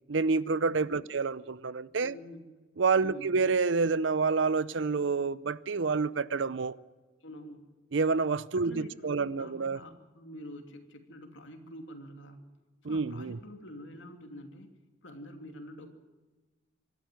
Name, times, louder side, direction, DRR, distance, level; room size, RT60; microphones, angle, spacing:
voice 1, 0.1-2.1 2.8-6.8 7.9-9.8 12.8-13.4, right 4 dB, 70° right, 0.6 m, -28 dB
voice 2, 2.0-2.4 3.0-3.3 7.2-7.7 8.6-12.4 12.9-14.7 15.0-15.9, left 1 dB, 75° left, 2.9 m, -47 dB
24.5 x 12.5 x 9.2 m
head